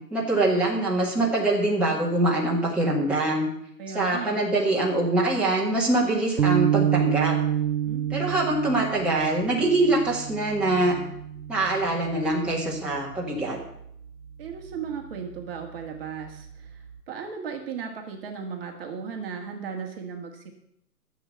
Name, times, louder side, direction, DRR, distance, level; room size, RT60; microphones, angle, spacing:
voice 1, 0.1-3.5 3.9-7.3 8.1-11.0 11.5-13.6, right 2 dB, ahead, -5 dB, 1.8 m, -24 dB
voice 2, 3.8-4.5 7.8-8.0 14.4-20.5, right 6 dB, 35° right, 3 dB, 1.7 m, -36 dB
sound 1, 6.4-12.8, right 10 dB, 80° right, 1.0 m, -28 dB
12.0 x 7.3 x 7.8 m, 0.74 s
hypercardioid pair, 145°, 50 cm